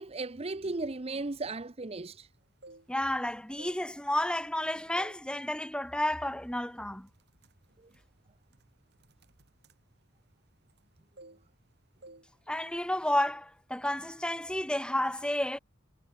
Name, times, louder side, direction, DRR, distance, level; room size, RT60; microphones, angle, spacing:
voice 1, 0.0-2.3, right 3 dB, 30° right, 0.8 m, -36 dB
sound 1, 2.4-3.2 3.5-4.6 5.0-5.3 5.7-5.9 6.5-6.7 7.0-10.9 11.2-11.7 12.0-12.3 12.6-12.8, right 2 dB, 60° right, 5.1 m, -55 dB
voice 2, 2.9-7.1 12.5-15.6, left 1 dB, 5° left, 1.8 m, -31 dB
head